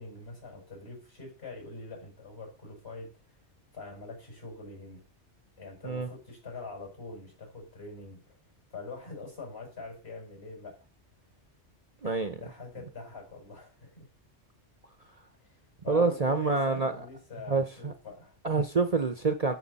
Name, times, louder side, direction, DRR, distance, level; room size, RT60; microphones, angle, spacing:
voice 1, 0.0-3.4 3.7-5.0 5.6-8.4 8.7-10.8 12.0-14.1 15.4-15.6 15.8-18.4, left 3 dB, 60° left, 6.3 m, -44 dB
voice 2, 12.0-12.3 15.9-16.9 17.5-17.9 18.4-19.5, right 4 dB, 35° right, 0.8 m, -27 dB
13.0 x 6.7 x 4.1 m
omnidirectional pair, 1.2 m